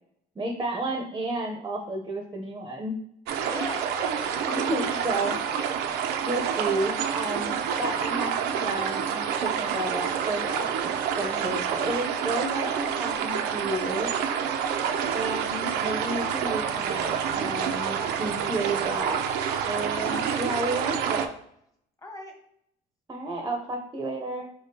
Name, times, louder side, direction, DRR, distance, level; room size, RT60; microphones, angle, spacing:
voice 1, 0.4-3.0 4.5-5.4 6.2-14.1 15.1-19.2 19.7-21.3 23.1-24.5, right 2 dB, 20° right, 3 dB, 0.6 m, -32 dB
sound 1, 3.3-21.3, right 7 dB, 85° right, 0.5 m, -28 dB
voice 2, 3.4-5.1 19.9-20.8 22.0-22.3, left 2 dB, 20° left, 2 dB, 1.2 m, -42 dB
4.6 x 3.5 x 2.7 m, 0.73 s
cardioid pair, 110°, 17 cm